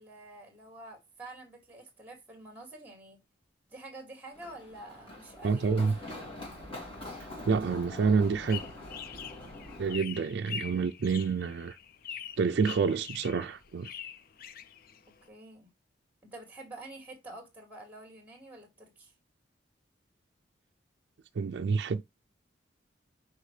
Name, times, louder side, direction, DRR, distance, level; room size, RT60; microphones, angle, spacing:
voice 1, 0.0-3.2 3.7-5.7 15.3-15.7 16.2-19.1, right 2 dB, 10° right, 2.5 m, -48 dB
Run, 4.3-9.9, left 1 dB, 30° left, 2.9 m, -44 dB
voice 2, 5.4-5.9 7.4-8.6 9.8-11.8 12.4-13.9 21.4-22.0, right 5 dB, 65° right, 0.4 m, -28 dB
sound 1, 8.2-15.3, left 8 dB, 55° left, 0.5 m, -44 dB
6.4 x 4.9 x 3.2 m
head